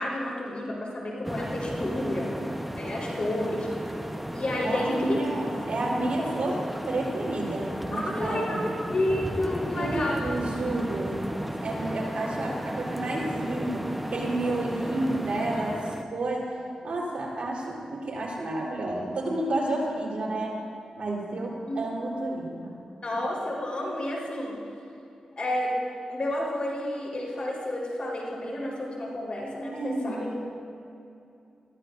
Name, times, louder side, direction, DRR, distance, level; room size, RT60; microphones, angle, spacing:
voice 1, 0.0-2.3 2.8-3.7 4.3-5.2 7.9-10.3 21.7-21.8 23.0-24.6 25.4-25.8 26.1-30.4, left 1 dB, 55° left, -3 dB, 4.1 m, -30 dB
sound 1, 1.2-16.0, equal, 5° right, 0.9 m, -34 dB
voice 2, 4.6-8.7 9.6-11.3 11.6-16.5 16.8-20.6 21.0-22.8 29.7-30.4, right 2 dB, 65° right, -3 dB, 3.9 m, -30 dB
21.5 x 15.0 x 2.6 m, 2.6 s
cardioid pair, 50°, 2 cm